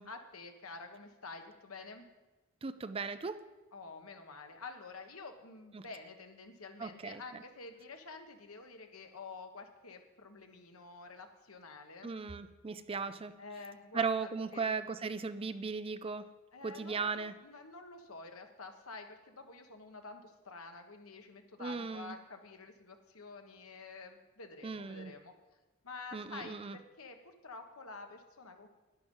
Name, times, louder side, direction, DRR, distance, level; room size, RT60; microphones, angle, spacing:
voice 1, 0.0-2.1 3.7-12.2 13.4-14.1 14.5-14.7 16.5-25.3 25.8-28.7, left 3 dB, 85° left, 5 dB, 1.4 m, -49 dB
voice 2, 2.6-3.4 5.7-5.8 6.8-7.4 12.0-13.3 13.9-16.3 16.6-17.3 21.6-22.2 24.6-25.1 26.1-26.8, right 5 dB, 25° right, 12 dB, 0.4 m, -37 dB
11.0 x 10.5 x 5.5 m, 1.1 s
head